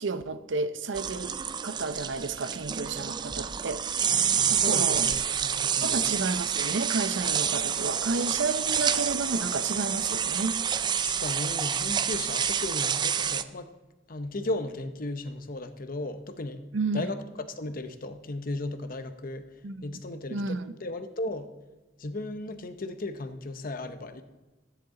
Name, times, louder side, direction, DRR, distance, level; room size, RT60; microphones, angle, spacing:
voice 1, 0.0-1.4 1.6-3.8 4.1-5.1 5.8-10.5 16.7-17.1 19.6-20.0 20.3-20.8, right 3 dB, 85° right, 12 dB, 0.6 m, -31 dB
sound 1, 0.9-13.4, right 8 dB, 25° right, 0.3 m, -28 dB
voice 2, 4.6-6.0 11.0-13.7 14.1-16.6 16.9-19.5 19.8-21.5 22.0-24.2, left 2 dB, 50° left, 10 dB, 0.8 m, -35 dB
13.5 x 10.0 x 3.8 m, 1.1 s
head